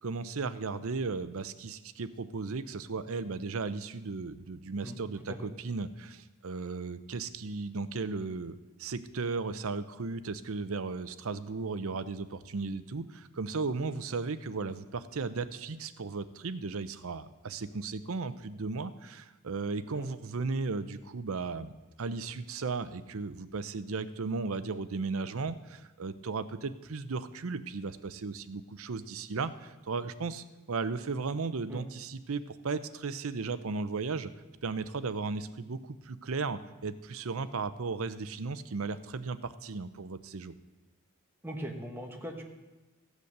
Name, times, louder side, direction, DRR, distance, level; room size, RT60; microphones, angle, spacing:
voice 1, 0.0-21.7 22.0-34.3 34.6-40.5, right 4 dB, 65° right, 13 dB, 0.6 m, -35 dB
voice 2, 41.4-42.4, equal, 10° right, 1 dB, 1.4 m, -40 dB
15.0 x 8.2 x 6.6 m, 1.1 s
head